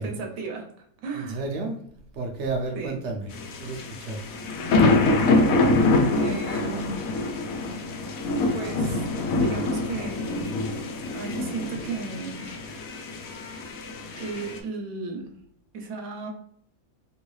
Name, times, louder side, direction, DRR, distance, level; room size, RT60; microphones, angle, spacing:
voice 1, 0.0-1.4 2.7-3.0 6.2-7.0 8.5-9.1 9.4-10.5 11.1-12.4 14.2-15.3 15.7-16.3, right 4 dB, 90° right, 3 dB, 1.1 m, -35 dB
voice 2, 1.1-1.8 2.1-3.3 3.6-4.4, right 3 dB, 65° right, 3 dB, 1.0 m, -31 dB
sound 1, 3.3-14.6, left 2 dB, 90° left, 1.1 m, -25 dB
3.0 x 2.6 x 3.1 m, 0.67 s
omnidirectional pair, 1.4 m